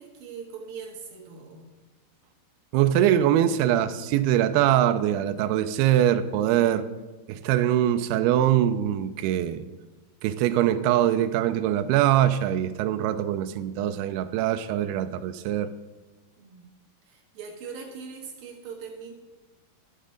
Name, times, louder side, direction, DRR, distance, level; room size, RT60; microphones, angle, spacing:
voice 1, 0.0-1.7 16.4-16.7 17.1-19.1, right 6 dB, 65° right, 0 dB, 2.6 m, -41 dB
voice 2, 2.7-6.9 7.3-9.6 10.2-15.7, right 11 dB, 80° right, 10 dB, 2.3 m, -23 dB
12.0 x 7.4 x 5.1 m, 1.2 s
omnidirectional pair, 5.1 m